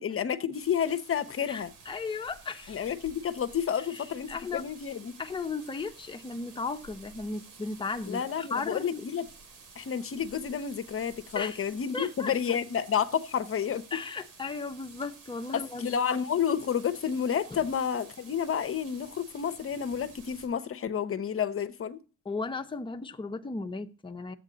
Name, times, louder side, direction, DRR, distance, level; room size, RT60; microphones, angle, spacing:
voice 1, 0.0-1.7 2.7-5.1 8.1-9.2 9.8-13.8 15.5-22.0, left 8 dB, 45° left, 0.9 m, -30 dB
sound 1, 0.5-20.5, right 4 dB, 85° right, 2.9 m, -52 dB
voice 2, 1.5-2.8 3.8-4.6 5.2-9.0 11.3-12.6 13.9-16.0 17.5-17.6 22.2-24.3, left 4 dB, 15° left, 0.9 m, -36 dB
12.0 x 8.4 x 3.9 m
cardioid pair, 90°, 30 cm